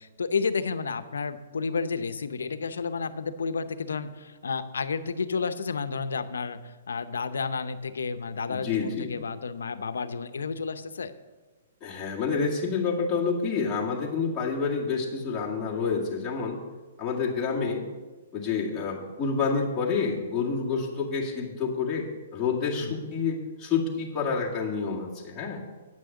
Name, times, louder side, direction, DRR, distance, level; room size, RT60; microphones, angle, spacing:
voice 1, 0.0-11.1 22.8-22.9, left 5 dB, 90° left, 11 dB, 0.7 m, -31 dB
voice 2, 8.5-9.1 11.8-16.6 17.0-17.8 18.3-22.0 22.3-25.6, left 5 dB, 15° left, -6 dB, 2.0 m, -28 dB
8.9 x 6.3 x 7.0 m, 1.3 s
hypercardioid pair, 145°, 0 cm